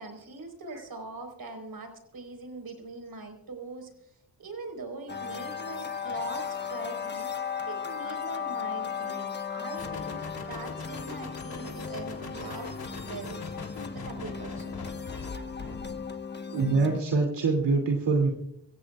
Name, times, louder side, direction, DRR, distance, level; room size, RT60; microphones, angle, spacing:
voice 1, 0.0-3.9 4.4-13.4 13.9-14.8, right 3 dB, 55° right, 5 dB, 4.5 m, -42 dB
sound 1, 5.1-17.0, left 6 dB, 25° left, 1.2 m, -36 dB
sound 2, 9.8-16.1, left 4 dB, 55° left, 3.3 m, -42 dB
voice 2, 16.5-18.3, right 3 dB, 80° right, 2 dB, 2.8 m, -24 dB
25.0 x 16.0 x 2.4 m, 0.75 s
cardioid pair, 65°, 43 cm